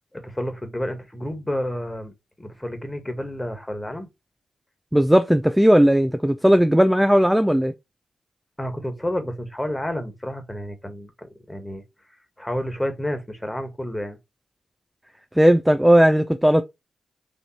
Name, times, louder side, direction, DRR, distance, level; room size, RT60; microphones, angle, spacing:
voice 1, 0.1-2.1 2.4-4.1 8.6-11.8 12.4-14.2, equal, 15° left, 1.6 m, -30 dB
voice 2, 4.9-7.7 15.4-16.6, equal, 5° right, 0.4 m, -16 dB
4.4 x 2.6 x 4.3 m
supercardioid pair, 50°, 0 cm